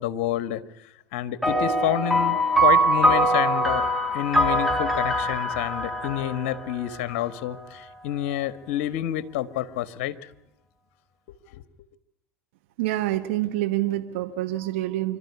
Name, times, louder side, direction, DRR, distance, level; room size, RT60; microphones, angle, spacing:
voice 1, 0.0-3.9 4.1-10.3 11.5-11.6, left 12 dB, 70° left, 14 dB, 1.5 m, -29 dB
sound 1, 1.4-7.2, right 1 dB, ahead, 3.7 m, -23 dB
voice 2, 12.8-15.2, right 15 dB, 70° right, 9 dB, 1.3 m, -27 dB
27.5 x 13.0 x 9.7 m, 0.85 s
hypercardioid pair, 80°, 7 cm